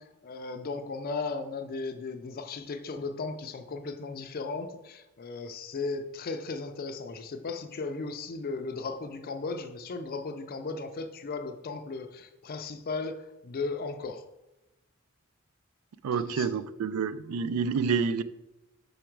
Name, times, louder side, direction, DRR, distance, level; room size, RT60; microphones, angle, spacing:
voice 1, 0.0-14.2 16.1-16.6, left 3 dB, 45° left, 7 dB, 0.4 m, -36 dB
voice 2, 16.0-18.2, right 5 dB, 85° right, 15 dB, 0.4 m, -28 dB
5.1 x 4.8 x 4.5 m, 0.96 s
head